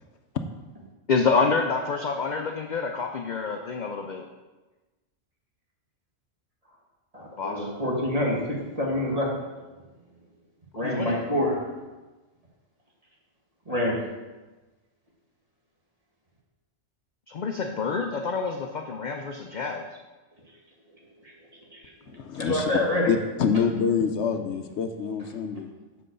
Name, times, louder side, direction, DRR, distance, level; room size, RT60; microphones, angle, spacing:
voice 1, 1.1-4.3 7.4-7.7 10.8-11.2 17.3-19.8, left 4 dB, 50° left, 4 dB, 0.6 m, -27 dB
voice 2, 7.1-9.3 10.8-11.6 13.7-14.0 21.2-21.3 21.7-21.8 22.3-23.1, left 1 dB, 30° right, -3 dB, 1.9 m, -26 dB
voice 3, 22.1-22.6 23.1-25.7, left 6 dB, 70° left, 7 dB, 0.9 m, -26 dB
7.6 x 4.7 x 6.6 m, 1.2 s
omnidirectional pair, 1.2 m